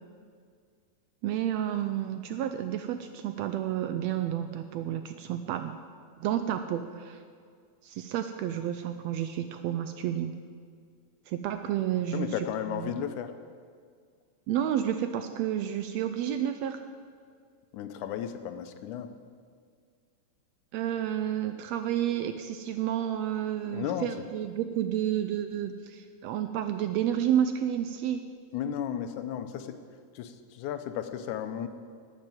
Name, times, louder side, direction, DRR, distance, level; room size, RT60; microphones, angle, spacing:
voice 1, 1.2-5.7 6.2-7.2 7.8-10.3 11.3-12.5 12.8-13.0 14.5-16.8 20.7-28.2, right 10 dB, 80° right, 9 dB, 1.6 m, -30 dB
voice 2, 12.1-13.3 17.7-19.1 23.7-24.3 28.5-29.8 30.1-31.7, left 9 dB, 85° left, 9 dB, 2.2 m, -34 dB
12.5 x 7.4 x 9.1 m, 2.1 s
omnidirectional pair, 3.4 m